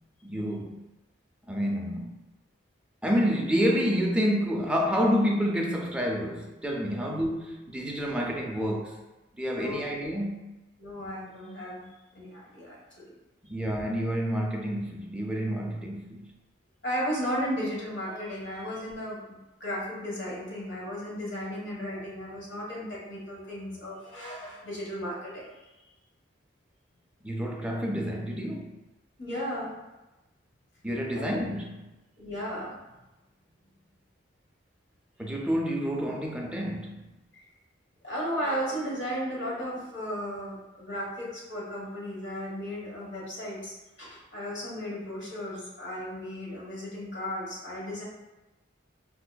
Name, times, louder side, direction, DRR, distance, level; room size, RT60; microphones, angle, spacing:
voice 1, 0.2-0.9 1.5-2.1 3.0-9.0 9.3-10.5 13.5-16.3 27.2-28.8 30.8-31.9 35.2-37.1, equal, 5° right, 0.3 m, -29 dB
voice 2, 10.8-13.1 16.8-25.5 29.2-29.7 31.2-31.4 32.2-32.7 37.3-37.4 38.0-43.7 44.0-48.0, equal, 65° left, 1.2 m, -35 dB
4.5 x 2.4 x 2.2 m
head